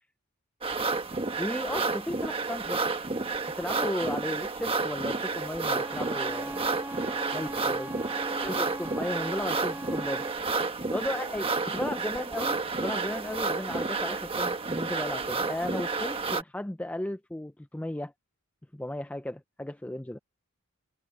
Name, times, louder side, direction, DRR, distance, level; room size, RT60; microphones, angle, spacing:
sound 1, 0.6-16.4, right 3 dB, 25° right, 1.3 m, -31 dB
voice 1, 1.4-2.8 3.6-6.7 7.3-7.9 8.4-10.3 10.9-18.1 18.7-20.2, left 1 dB, 5° left, 0.4 m, -35 dB
voice 2, 4.2-4.6 7.1-8.8 11.2-12.2, left 3 dB, 45° left, 7.4 m, -55 dB
Bowed string instrument, 5.6-10.4, right 1 dB, 10° right, 3.1 m, -40 dB
head